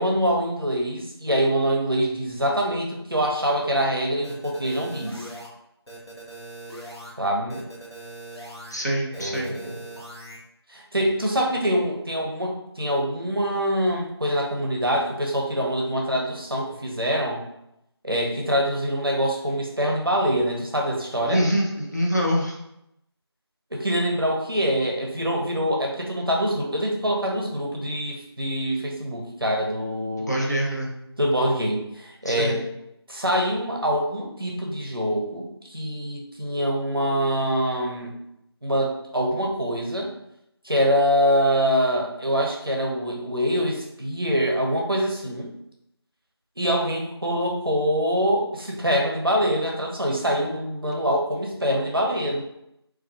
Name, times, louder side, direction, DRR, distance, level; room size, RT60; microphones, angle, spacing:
voice 1, 0.0-5.3 7.2-7.7 9.1-9.8 10.7-17.4 18.0-21.4 23.7-30.4 31.2-32.7 33.1-38.1 38.6-40.1 40.6-45.5 46.6-52.4, equal, 55° right, -1 dB, 0.5 m, -24 dB
sound 1, 4.2-5.5 5.9-7.1 7.5-8.7 9.1-10.4, right 1 dB, 70° left, 0.8 m, -40 dB
voice 2, 8.7-9.5 21.2-22.6 30.2-30.9 32.3-32.6, equal, 40° left, -2 dB, 0.4 m, -25 dB
2.3 x 2.1 x 2.6 m, 0.82 s
figure-of-eight pair, 180°, 14 cm